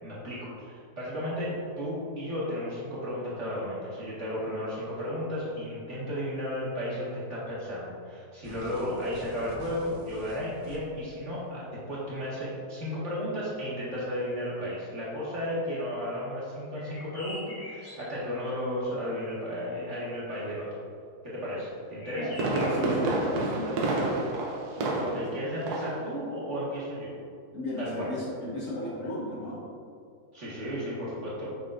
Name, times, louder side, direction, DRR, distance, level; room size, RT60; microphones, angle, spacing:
voice 1, 0.0-20.7 21.2-22.3 25.0-27.2 27.8-28.1 30.3-31.5, equal, 45° right, -8 dB, 1.9 m, -34 dB
sound 1, 8.4-11.1, right 1 dB, 30° right, 0.6 m, -46 dB
sound 2, 16.7-18.2 22.0-23.0, left 1 dB, 85° left, 2.3 m, -44 dB
Fireworks, 21.9-25.4 25.7-26.0 26.4-26.5, right 2 dB, 75° right, 1.3 m, -28 dB
voice 2, 22.7-24.2 24.8-25.4 27.5-29.6, left 1 dB, 55° left, -6 dB, 1.5 m, -36 dB
7.1 x 5.7 x 2.5 m, 2.4 s
omnidirectional pair, 1.7 m